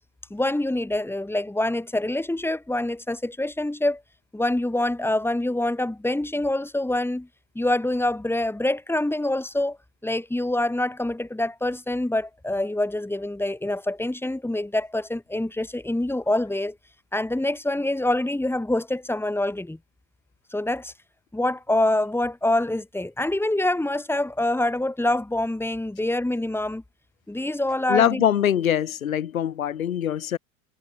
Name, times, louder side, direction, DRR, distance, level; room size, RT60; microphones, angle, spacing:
voice 1, 0.3-4.0 4.3-7.3 7.5-9.8 10.0-16.8 17.1-19.8 20.5-20.9 21.3-26.8 27.3-28.2, left 1 dB, 5° left, 6.4 m, -25 dB
voice 2, 27.9-30.4, left 10 dB, 85° left, 4.9 m, -23 dB
hypercardioid pair, 85°, 40 cm